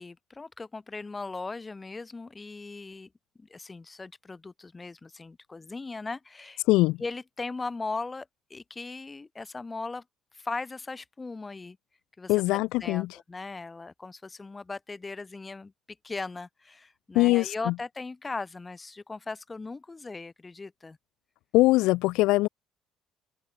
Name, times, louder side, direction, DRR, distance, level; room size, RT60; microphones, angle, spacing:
voice 1, 0.0-3.1 3.4-6.6 7.0-10.0 10.3-11.8 12.2-15.7 16.0-21.0, left 3 dB, 15° left, 3.1 m, -38 dB
voice 2, 6.7-7.0 12.3-13.1 17.2-17.7 21.5-22.5, left 20 dB, 85° left, 0.3 m, -22 dB
open air
cardioid pair, 130°, 0 cm